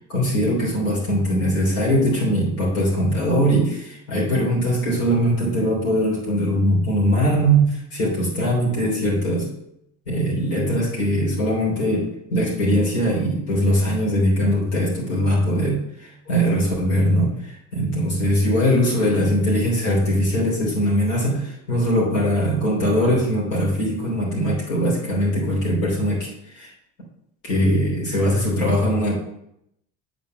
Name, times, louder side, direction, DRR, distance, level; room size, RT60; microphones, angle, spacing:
voice 1, 0.1-9.5 10.1-26.7 27.4-29.2, equal, 85° left, -5 dB, 3.4 m, -21 dB
7.5 x 5.0 x 6.5 m, 0.78 s
hypercardioid pair, 70°, 38 cm